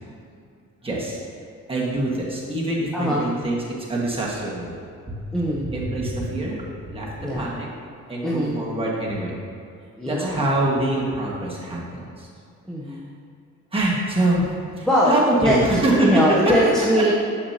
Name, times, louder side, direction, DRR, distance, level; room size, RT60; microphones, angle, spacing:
voice 1, 0.8-1.2 1.7-4.7 5.1-5.2 5.7-7.7 8.1-9.3 10.0-12.3 12.9-13.0 13.7-14.5 14.8-16.4, right 1 dB, 15° right, -5 dB, 1.7 m, -24 dB
voice 2, 2.9-3.3 5.3-5.7 7.2-7.5 8.2-8.6 10.0-10.5 12.7-13.2 14.9-15.6 16.0-17.1, equal, ahead, -5 dB, 0.8 m, -21 dB
7.3 x 6.8 x 2.9 m, 2.4 s
cardioid pair, 90°, 31 cm